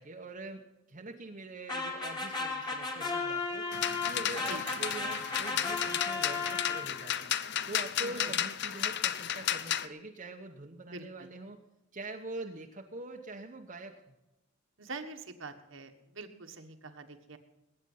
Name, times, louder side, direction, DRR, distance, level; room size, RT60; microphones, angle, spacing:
voice 1, 0.0-3.7 4.0-7.3 7.7-11.6 11.9-14.1, right 2 dB, 40° right, 2 dB, 1.0 m, -44 dB
sound 1, 1.7-7.2, left 4 dB, 20° left, 2.1 m, -35 dB
sound 2, 3.7-9.9, left 10 dB, 55° left, 0.6 m, -33 dB
voice 2, 8.0-8.3 10.8-11.3 14.8-17.4, right 3 dB, 65° right, 7 dB, 1.5 m, -45 dB
20.5 x 9.0 x 5.6 m, 0.96 s
head